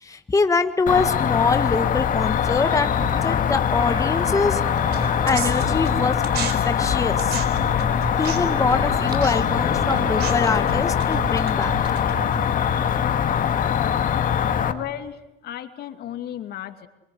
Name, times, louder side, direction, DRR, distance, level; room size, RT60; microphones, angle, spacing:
voice 1, 0.0-3.0 3.2-4.6 5.3-7.4 8.2-11.7, left 4 dB, 20° left, 8 dB, 1.6 m, -24 dB
Cricket, 0.9-14.7, left 8 dB, 55° left, 2.0 m, -22 dB
sound 1, 2.3-11.6, right 2 dB, 25° right, 6.0 m, -39 dB
sound 2, 4.9-6.5 6.8-12.6, right 9 dB, 75° right, 4.3 m, -33 dB
voice 2, 14.7-16.9, left 11 dB, 70° left, 7 dB, 2.4 m, -34 dB
26.0 x 23.0 x 9.7 m, 0.92 s
cardioid pair, 110°, 17 cm